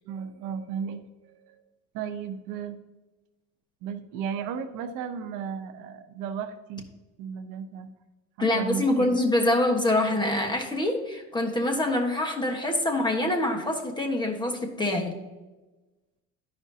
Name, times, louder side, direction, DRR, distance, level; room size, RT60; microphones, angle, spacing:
voice 1, 0.1-1.6 1.9-2.8 3.8-6.8 7.2-7.9 8.4-9.2, right 7 dB, 85° right, 9 dB, 0.8 m, -35 dB
voice 2, 8.4-15.2, left 1 dB, 15° left, 2 dB, 1.2 m, -25 dB
12.5 x 5.1 x 2.8 m, 1.1 s
cardioid pair, 115°, 30 cm